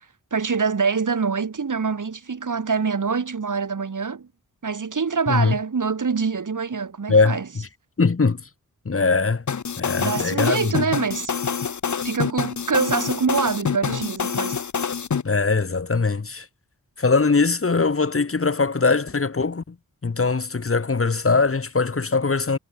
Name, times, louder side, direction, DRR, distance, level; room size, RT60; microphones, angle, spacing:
voice 1, 0.3-4.3 4.6-7.5 10.0-11.3 12.0-14.6, right 5 dB, 65° right, 3.0 m, -25 dB
voice 2, 8.0-8.4 8.8-9.4 9.8-10.7 15.2-16.4 17.0-19.7 20.0-22.6, left 4 dB, 40° left, 1.6 m, -21 dB
sound 1, 9.5-15.2, left 6 dB, 60° left, 1.2 m, -26 dB
wide cardioid pair, 60°, 33 cm